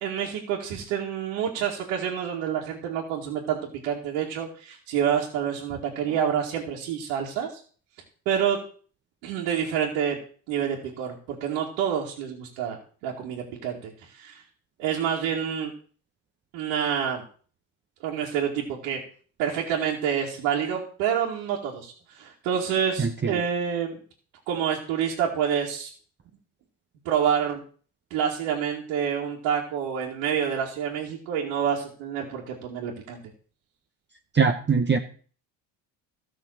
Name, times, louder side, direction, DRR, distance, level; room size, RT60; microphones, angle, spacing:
voice 1, 0.0-3.6 3.8-7.6 8.3-8.6 9.2-10.2 10.5-12.8 13.0-14.4 14.8-15.7 16.5-17.2 18.0-19.0 19.4-24.0 24.5-25.9 27.0-27.6 28.1-33.2, right 8 dB, 85° right, -3 dB, 2.4 m, -28 dB
voice 2, 23.0-23.3 34.3-35.0, right 5 dB, 25° right, 4 dB, 1.1 m, -22 dB
13.5 x 6.3 x 6.6 m, 0.43 s
supercardioid pair, 85°, 45 cm